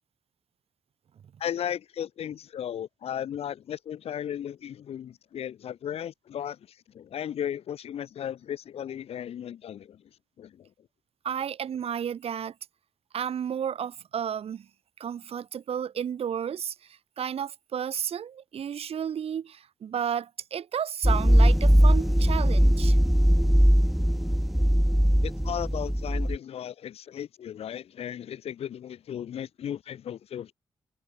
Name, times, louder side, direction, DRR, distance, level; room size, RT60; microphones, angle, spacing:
voice 1, 1.4-10.0 10.4-10.7 25.2-30.5, left 10 dB, 85° left, 1.2 m, -35 dB
voice 2, 11.2-12.5 13.1-14.7 15.0-23.0, right 8 dB, 80° right, 2.9 m, -32 dB
sound 1, 21.0-26.4, equal, ahead, 0.5 m, -20 dB
open air
cardioid pair, 65°, 10 cm